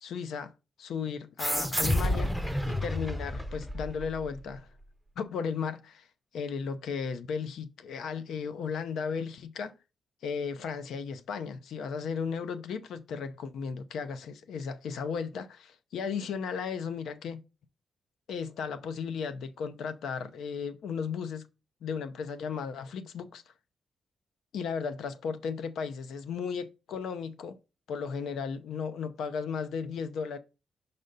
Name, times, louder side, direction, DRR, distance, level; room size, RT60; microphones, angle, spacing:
voice 1, 0.0-0.5 0.8-2.3 2.7-4.7 5.2-6.1 6.3-9.8 10.2-17.4 18.3-21.5 21.8-23.4 24.5-27.6 27.9-30.4, left 6 dB, 90° left, 0.6 m, -35 dB
sound 1, 1.4-4.4, equal, 5° left, 0.5 m, -30 dB
5.5 x 5.2 x 3.9 m
wide cardioid pair, 180°, 0 cm